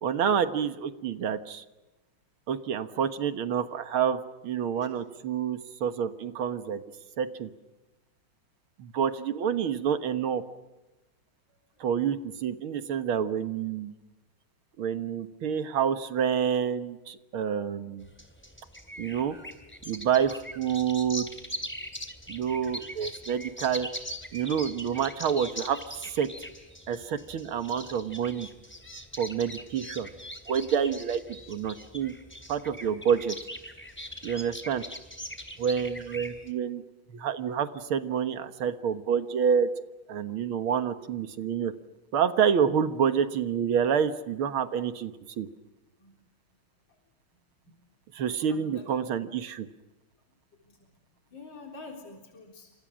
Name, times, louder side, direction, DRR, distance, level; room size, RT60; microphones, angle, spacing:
voice 1, 0.0-1.6 2.5-6.8 7.2-7.5 8.8-10.4 11.8-13.9 14.8-18.1 19.0-19.4 19.9-21.3 22.3-23.9 24.3-26.3 26.9-28.5 29.2-30.1 30.5-31.2 31.5-32.1 32.5-33.4 34.2-34.8 35.6-36.8 37.1-39.7 40.1-41.7 42.1-45.5 48.1-49.7, right 7 dB, 85° right, 10 dB, 2.2 m, -28 dB
voice 2, 11.5-11.9 46.0-46.2 46.9-47.0 47.6-47.8 48.5-49.1 50.6-50.8 51.3-52.7, left 3 dB, 60° left, 2 dB, 4.4 m, -48 dB
sound 1, 18.0-36.5, equal, 5° left, 2.9 m, -41 dB
29.0 x 26.5 x 6.3 m, 1.1 s
omnidirectional pair, 2.3 m